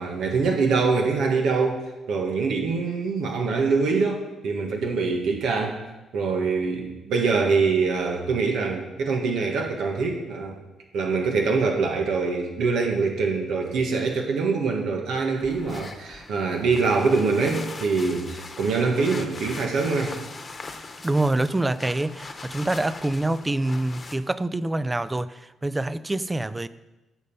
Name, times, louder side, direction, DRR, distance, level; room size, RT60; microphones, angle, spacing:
voice 1, 0.0-5.8 6.1-10.6 10.9-20.2, right 4 dB, 75° right, 1.6 m, -24 dB
sound 1, 15.4-24.2, left 3 dB, 35° left, 1.1 m, -40 dB
voice 2, 21.0-26.7, right 2 dB, 15° right, 0.5 m, -26 dB
14.5 x 5.3 x 5.5 m
cardioid pair, 90°, 0 cm